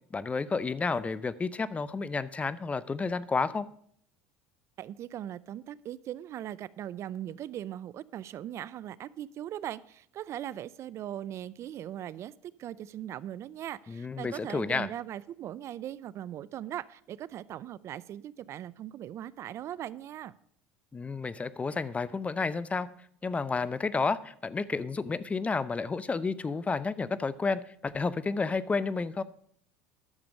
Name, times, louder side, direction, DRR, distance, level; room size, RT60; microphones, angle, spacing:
voice 1, 0.1-3.7 13.9-14.9 20.9-22.9 23.2-29.2, left 4 dB, 20° left, 17 dB, 0.6 m, -31 dB
voice 2, 4.8-20.3, right 11 dB, 50° right, 19 dB, 0.4 m, -39 dB
11.0 x 6.9 x 6.3 m, 0.64 s
supercardioid pair, 85°, 6 cm